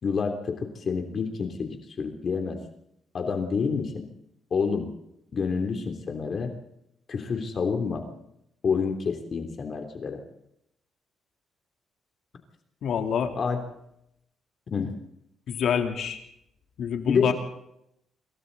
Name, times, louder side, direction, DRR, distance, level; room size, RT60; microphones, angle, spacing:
voice 1, 0.0-2.6 3.1-4.0 4.5-4.9 5.3-6.5 7.1-8.0 8.6-10.2 13.4-13.6 14.7-14.9 17.1-17.3, left 5 dB, 50° left, 4 dB, 3.3 m, -28 dB
voice 2, 12.8-13.3 15.5-16.2 16.8-17.3, left 7 dB, 70° left, 4 dB, 3.4 m, -26 dB
27.0 x 23.5 x 4.1 m, 0.79 s
cardioid pair, 90°, 0 cm